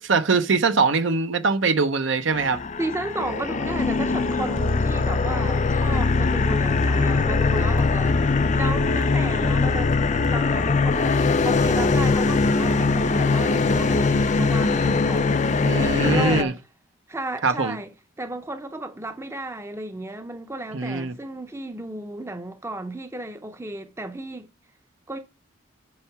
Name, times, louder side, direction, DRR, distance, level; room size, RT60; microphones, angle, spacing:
voice 1, 0.0-2.6 15.6-16.5 17.4-17.8 20.7-21.1, right 4 dB, 65° right, 0.7 m, -22 dB
sound 1, 2.3-16.4, left 3 dB, 35° left, 0.4 m, -21 dB
voice 2, 2.8-8.2 8.5-15.5 15.8-16.6 17.1-17.9 18.2-24.5 25.1-25.2, right 1 dB, 15° right, 0.6 m, -33 dB
8.6 x 4.6 x 5.9 m
head